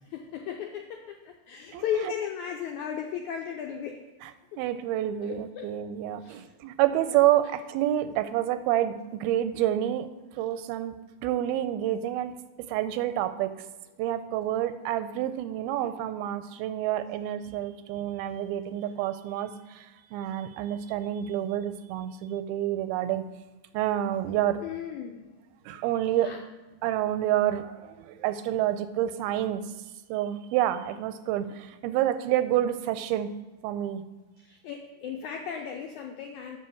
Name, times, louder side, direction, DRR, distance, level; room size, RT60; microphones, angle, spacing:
voice 1, 0.0-4.1 4.5-4.6 5.2-5.7 6.2-6.5 7.0-7.4 15.8-15.9 24.5-25.3 26.1-26.4 34.4-36.6, left 8 dB, 85° left, 2 dB, 1.7 m, -36 dB
voice 2, 4.6-10.1 10.4-10.9 11.2-12.3 12.7-13.5 14.0-19.9 20.1-23.2 23.7-24.6 25.7-26.3 26.8-29.6 30.1-33.3 33.6-34.0, right 12 dB, 90° right, 12 dB, 2.5 m, -28 dB
7.6 x 6.0 x 7.0 m, 1.2 s
omnidirectional pair, 4.2 m